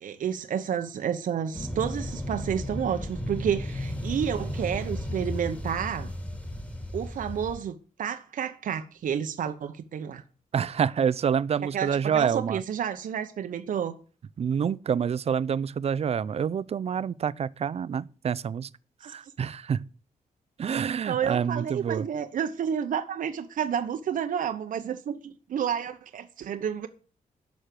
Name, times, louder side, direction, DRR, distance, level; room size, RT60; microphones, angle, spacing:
voice 1, 0.0-6.1 6.9-10.2 11.6-14.0 19.0-19.1 21.1-26.9, right 8 dB, 70° right, 1.0 m, -30 dB
sound 1, 1.5-7.6, left 1 dB, 10° left, 2.5 m, -34 dB
voice 2, 10.5-12.6 14.4-18.7 19.0-19.9 20.6-22.1, right 7 dB, 45° right, 0.5 m, -27 dB
11.5 x 6.5 x 9.0 m
wide cardioid pair, 135°, 14 cm